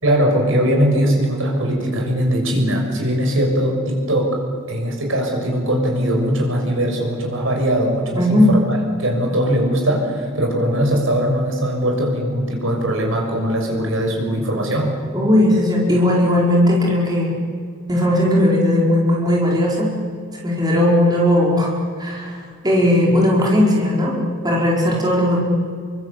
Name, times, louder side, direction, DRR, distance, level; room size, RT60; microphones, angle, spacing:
voice 1, 0.0-4.4 4.7-14.9, equal, 65° right, 1 dB, 6.5 m, -20 dB
voice 2, 8.2-8.5 15.1-17.3 17.9-19.9 20.4-21.7 22.0-24.2 24.4-25.4, left 1 dB, 20° right, -3 dB, 4.9 m, -17 dB
29.0 x 24.0 x 8.4 m, 2.1 s
head